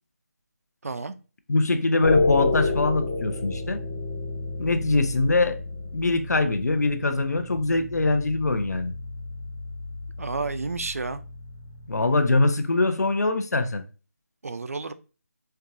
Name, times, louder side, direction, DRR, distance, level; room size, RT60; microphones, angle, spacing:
voice 1, 0.8-1.1 10.2-11.2 14.4-14.9, right 4 dB, 60° right, 0.4 m, -31 dB
voice 2, 1.5-3.8 4.6-5.6 5.9-8.9 11.9-13.8, left 3 dB, 80° left, 0.6 m, -23 dB
sound 1, 2.0-12.2, left 3 dB, 20° left, 0.7 m, -30 dB
4.5 x 2.3 x 2.6 m
figure-of-eight pair, 175°, 9 cm